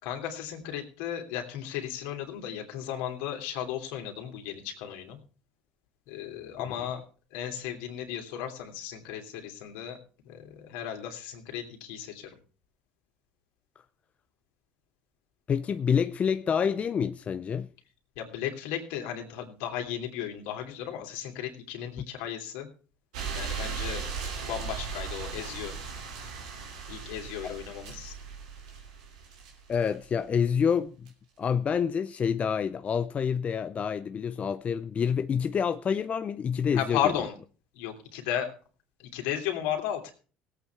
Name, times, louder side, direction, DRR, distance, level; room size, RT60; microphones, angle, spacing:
voice 1, 0.0-5.2 6.1-7.0 7.3-10.0 10.2-12.3 18.2-22.7 23.3-24.0 24.4-25.7 26.9-28.1 36.7-37.3 37.7-38.5 39.0-40.1, left 10 dB, 75° left, 2.9 m, -35 dB
voice 2, 15.5-17.7 27.4-27.6 29.7-30.9 31.4-37.1, left 7 dB, 35° left, 0.6 m, -27 dB
sound 1, 23.1-30.0 31.1-31.2, right 5 dB, 90° right, 2.9 m, -37 dB
17.5 x 8.4 x 4.6 m
hypercardioid pair, 75°, 4 cm